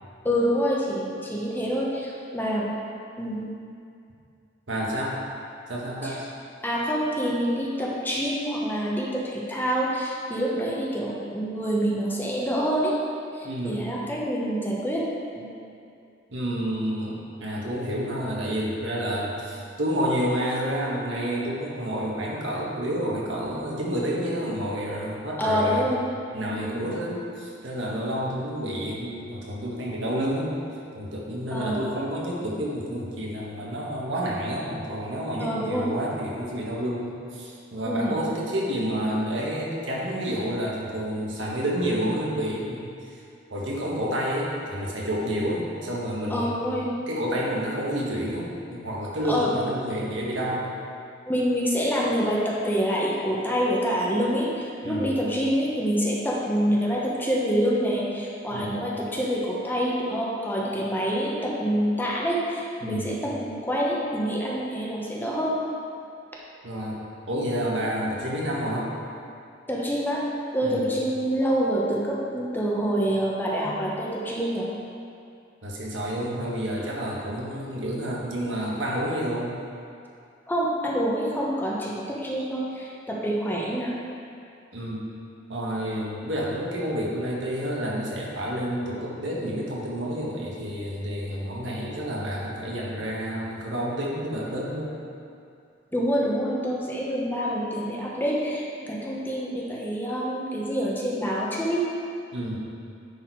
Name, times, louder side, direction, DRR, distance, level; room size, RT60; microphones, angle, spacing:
voice 1, 0.2-2.7 3.2-3.5 6.0-6.2 6.6-12.9 13.3-15.0 15.3-15.5 25.4-26.0 26.4-27.0 31.5-31.8 35.4-35.9 37.8-38.3 46.3-46.9 49.3-49.5 51.3-65.6 69.7-70.2 70.5-74.7 80.5-83.9 95.9-101.8, equal, 10° left, -4 dB, 1.0 m, -26 dB
voice 2, 4.7-5.2 5.7-6.3 13.4-13.9 16.3-25.9 26.3-30.5 30.9-42.9 43.5-46.8 47.1-50.7 54.8-55.1 58.5-58.7 62.8-63.2 66.6-67.0 67.3-68.9 70.6-70.9 75.6-79.5 84.7-85.0 85.5-95.0 102.3-102.6, equal, 85° right, -4 dB, 1.5 m, -29 dB
10.0 x 4.4 x 4.7 m, 2.5 s
head